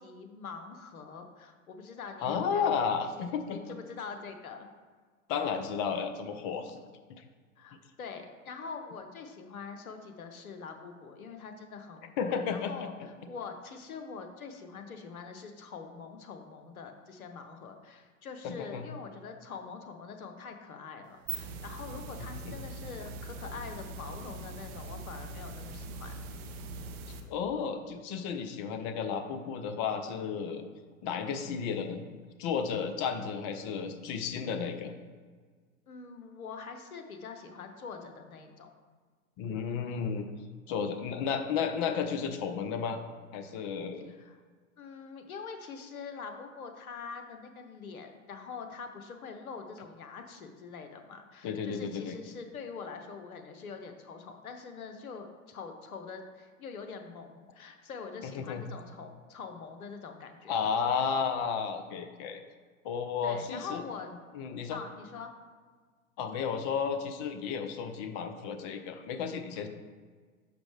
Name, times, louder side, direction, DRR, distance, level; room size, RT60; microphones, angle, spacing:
voice 1, 0.0-2.9 3.5-4.7 7.6-26.1 33.2-33.3 35.9-38.7 44.1-44.4 44.8-60.5 63.2-64.1 64.7-65.3, left 5 dB, 85° left, 6 dB, 0.9 m, -44 dB
voice 2, 2.2-3.6 5.3-6.8 12.2-13.3 18.4-18.9 22.4-22.5 27.1-30.6 31.0-32.0 32.4-34.9 39.4-40.3 40.7-43.0 43.3-44.1 51.4-52.2 58.2-58.6 60.5-62.4 62.8-63.8 64.3-64.8 66.2-69.7, left 6 dB, 35° left, 7 dB, 0.5 m, -33 dB
sound 1, 21.0-27.2, right 3 dB, 25° right, 0.3 m, -42 dB
6.1 x 5.1 x 3.2 m, 1.6 s
hypercardioid pair, 115°, 42 cm